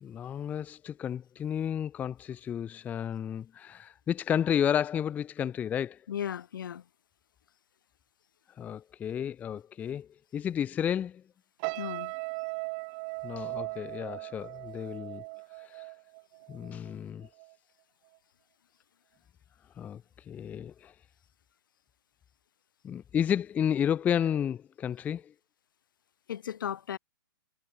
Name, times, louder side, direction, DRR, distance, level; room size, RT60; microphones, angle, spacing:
voice 1, 0.0-6.0 8.6-11.2 13.2-15.2 15.7-15.8 16.5-17.3 19.8-20.0 20.3-20.9 22.8-25.3, left 9 dB, 15° left, 0.5 m, -32 dB
voice 2, 6.1-6.8 11.8-12.1 26.3-27.0, left 9 dB, 75° left, 1.8 m, -35 dB
sound 1, 11.6-16.9 17.2-17.5, right 35 dB, 35° right, 1.4 m, -38 dB
hypercardioid pair, 145°, 11 cm